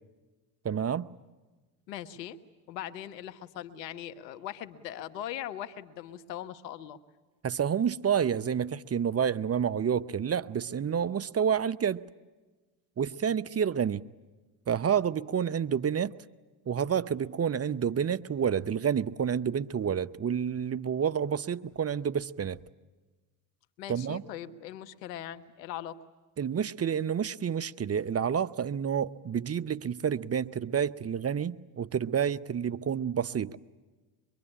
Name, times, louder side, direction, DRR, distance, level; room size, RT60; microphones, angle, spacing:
voice 1, 0.6-1.1 7.4-12.0 13.0-14.0 14.7-16.1 16.7-22.6 23.9-24.2 26.4-33.6, right 8 dB, 30° right, 0.9 m, -29 dB
voice 2, 1.9-2.4 2.7-7.0 23.8-26.0, left 11 dB, 90° left, 1.4 m, -40 dB
24.5 x 23.5 x 10.0 m
hypercardioid pair, 70°, 48 cm